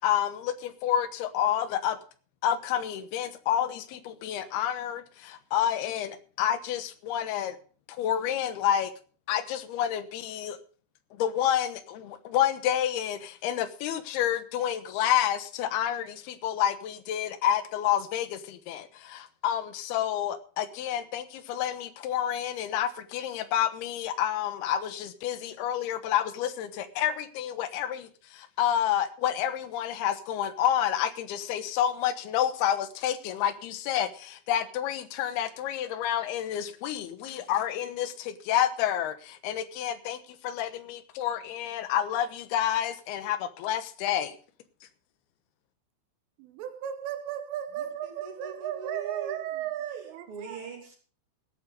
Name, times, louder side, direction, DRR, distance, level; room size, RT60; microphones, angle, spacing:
voice 1, 0.0-2.0 2.4-7.6 7.9-8.9 9.3-10.6 11.2-44.4, left 10 dB, 70° left, 2.7 m, -29 dB
voice 2, 46.4-50.6, right 11 dB, 85° right, 3.7 m, -35 dB
voice 3, 47.8-49.6 49.9-51.0, right 4 dB, 35° right, 3.0 m, -43 dB
17.5 x 8.8 x 5.2 m
omnidirectional pair, 5.6 m